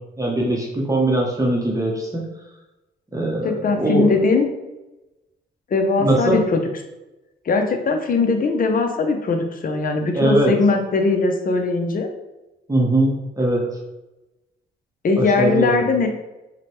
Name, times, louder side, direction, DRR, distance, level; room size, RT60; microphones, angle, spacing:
voice 1, 0.2-2.3 3.1-4.1 6.0-6.4 10.1-10.5 12.7-13.6 15.2-15.8, right 1 dB, 15° right, -3 dB, 0.8 m, -20 dB
voice 2, 3.4-4.5 5.7-6.6 7.5-12.1 15.0-16.1, left 3 dB, 40° left, 5 dB, 0.6 m, -20 dB
4.8 x 2.2 x 3.0 m, 1.0 s
cardioid pair, 85°, 21 cm